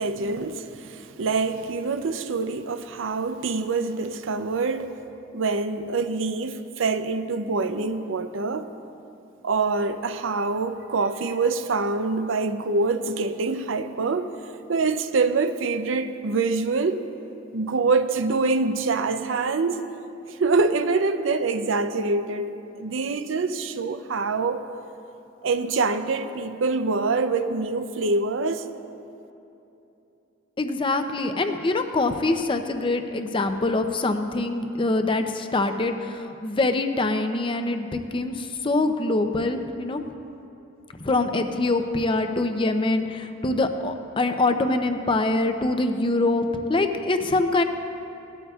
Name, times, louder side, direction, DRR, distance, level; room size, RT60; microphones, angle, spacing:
voice 1, 0.0-5.0 5.3-8.7 9.4-14.3 14.7-17.1 17.5-19.8 20.3-24.7 25.4-28.7, right 3 dB, 70° right, 0.6 m, -25 dB
voice 2, 30.6-40.0 41.0-47.6, left 2 dB, 25° left, 0.6 m, -24 dB
18.5 x 12.5 x 2.4 m
head